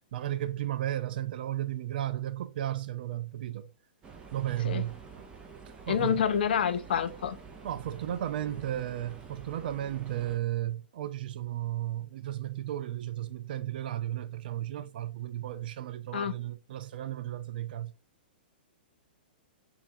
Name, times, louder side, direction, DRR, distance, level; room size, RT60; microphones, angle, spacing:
voice 1, 0.1-3.7 4.3-5.0 5.9-6.2 7.6-17.9, right 12 dB, 65° right, 0.3 m, -34 dB
sound 1, 4.0-10.4, right 5 dB, 20° right, 0.6 m, -48 dB
voice 2, 5.9-7.4 16.1-16.4, left 8 dB, 70° left, 0.4 m, -28 dB
3.3 x 2.3 x 2.6 m
hypercardioid pair, 125°, 5 cm